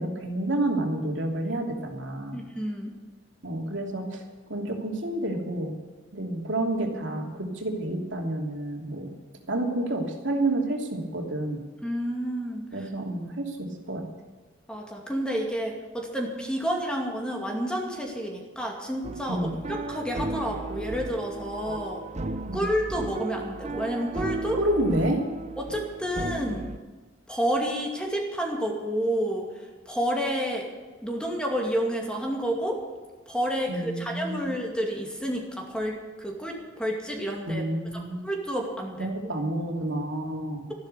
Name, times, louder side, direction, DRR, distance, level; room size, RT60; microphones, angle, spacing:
voice 1, 0.0-2.4 3.4-4.2 4.5-5.7 6.1-9.1 9.5-11.6 12.7-13.6 13.9-14.0 19.3-19.5 22.5-22.7 24.6-25.2 33.7-34.5 37.5-38.2 39.0-40.7, right 1 dB, 70° right, 1 dB, 2.9 m, -29 dB
voice 2, 2.3-2.9 11.8-12.6 14.7-22.0 22.5-24.6 25.6-26.7 27.3-29.5 29.9-30.7 31.0-32.8 33.3-37.6 38.2-39.1, equal, 5° left, 0 dB, 2.3 m, -30 dB
sound 1, 19.0-26.8, right 2 dB, 35° right, 0.7 m, -35 dB
14.0 x 12.0 x 6.8 m, 1.3 s
head